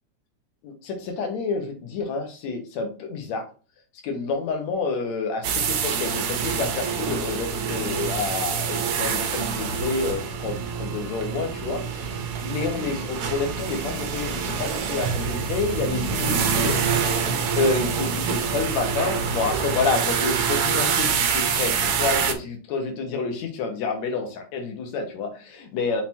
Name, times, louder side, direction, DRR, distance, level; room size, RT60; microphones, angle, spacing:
voice 1, 0.6-3.5 4.0-16.8 17.6-26.0, left 4 dB, 65° left, 3 dB, 2.4 m, -29 dB
sound 1, 5.4-22.3, right 6 dB, 70° right, 1.4 m, -26 dB
5.8 x 4.0 x 4.4 m, 0.36 s
omnidirectional pair, 3.6 m